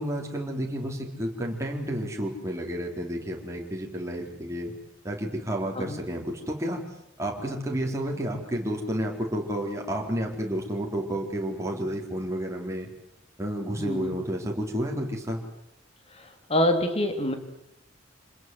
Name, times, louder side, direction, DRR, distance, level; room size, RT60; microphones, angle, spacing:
voice 1, 0.0-4.7 5.0-6.8 7.2-12.9 13.4-15.4, equal, 15° right, -1 dB, 4.3 m, -31 dB
voice 2, 13.8-14.2 16.5-17.3, left 1 dB, 30° left, 6 dB, 3.3 m, -25 dB
27.5 x 21.0 x 8.0 m, 0.82 s
head